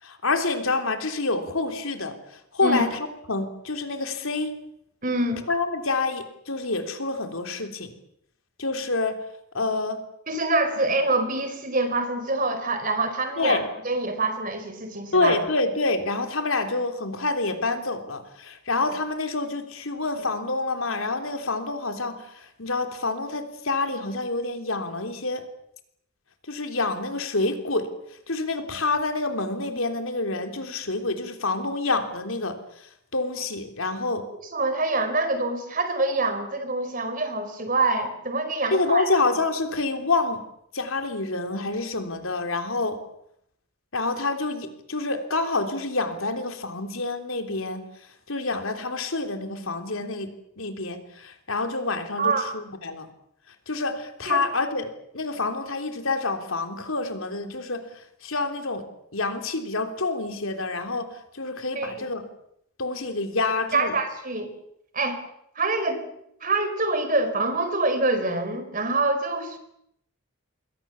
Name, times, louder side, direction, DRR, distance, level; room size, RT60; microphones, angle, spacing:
voice 1, 0.0-2.9 3.3-4.5 5.5-7.9 8.6-9.2 9.5-10.0 13.4-13.6 15.1-25.4 26.5-27.9 28.3-32.6 33.1-34.3 38.7-40.4 40.7-43.0 43.9-47.8 48.3-53.1 53.7-54.9 55.1-57.8 58.2-58.8 59.1-62.2 62.8-63.9, left 3 dB, 75° left, 6 dB, 3.5 m, -27 dB
voice 2, 5.0-5.4 10.3-15.4 34.5-39.1 52.2-52.4 54.3-54.4 61.7-62.0 63.7-64.5 64.9-65.2 65.6-66.0 66.4-69.6, right 2 dB, 40° right, 8 dB, 4.6 m, -25 dB
28.0 x 22.5 x 7.2 m, 0.73 s
head